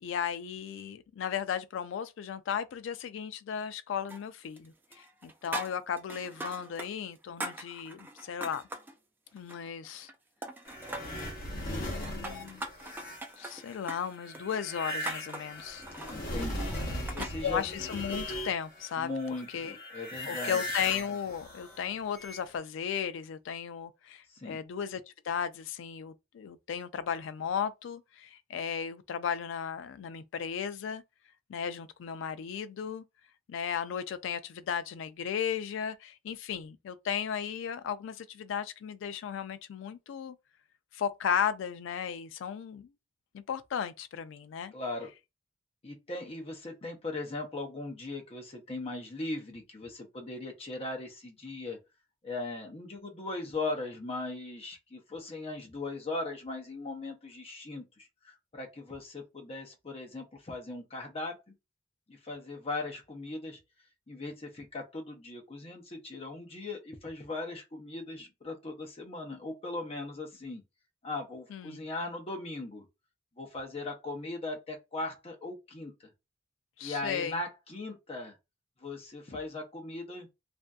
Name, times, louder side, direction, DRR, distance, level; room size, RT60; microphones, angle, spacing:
voice 1, 0.0-8.6 9.3-10.1 11.5-12.7 13.4-15.8 17.4-19.1 19.5-19.8 20.3-31.0 31.5-33.0 33.5-40.4 40.9-42.9 43.3-44.7 71.5-71.8 76.8-77.4, left 7 dB, 70° left, 0.3 m, -35 dB
sound 1, 4.1-4.7 4.9-6.9 7.1-8.9 9.4-10.1 10.4-11.3 11.8-17.4, right 1 dB, 10° right, 0.3 m, -41 dB
sound 2, 10.7-18.9 19.2-22.6, left 1 dB, 45° left, 1.0 m, -39 dB
voice 2, 16.1-17.6 19.0-20.6 24.3-24.6 44.7-45.1 45.8-51.8 52.2-61.5 62.1-63.6 64.1-70.6 71.0-72.9 73.4-75.9 76.8-78.4 78.8-80.3, left 2 dB, 30° left, 0.7 m, -39 dB
2.5 x 2.5 x 2.2 m
head